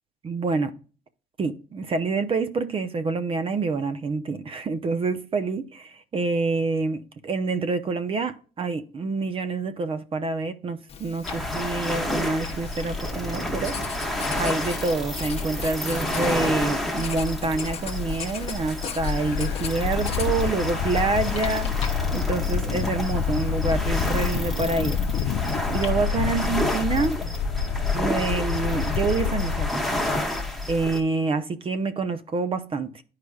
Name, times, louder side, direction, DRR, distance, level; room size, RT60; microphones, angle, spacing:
voice 1, 0.2-0.7 1.4-13.7 14.4-25.0 25.7-27.3 27.9-29.8 30.7-33.0, right 3 dB, 35° right, 0.6 m, -27 dB
Writing, 10.9-25.9, left 6 dB, 35° left, 0.9 m, -39 dB
sound 1, 11.2-31.0, left 1 dB, ahead, 1.1 m, -30 dB
sound 2, 19.0-29.7, left 8 dB, 70° left, 0.4 m, -28 dB
10.5 x 4.8 x 2.3 m
cardioid pair, 110°, 17 cm